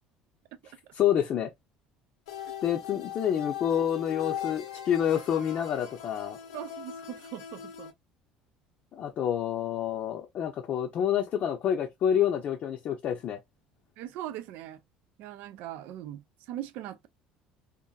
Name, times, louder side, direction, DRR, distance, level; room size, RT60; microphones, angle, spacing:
voice 1, 0.9-1.5 2.6-6.4 8.9-13.4, left 9 dB, 55° left, 0.6 m, -28 dB
sound 1, 2.3-7.9, left 10 dB, 85° left, 0.8 m, -39 dB
voice 2, 6.5-7.9 14.0-14.8 15.2-17.1, right 12 dB, 70° right, 0.4 m, -40 dB
2.7 x 2.5 x 2.3 m
hypercardioid pair, 75°, 3 cm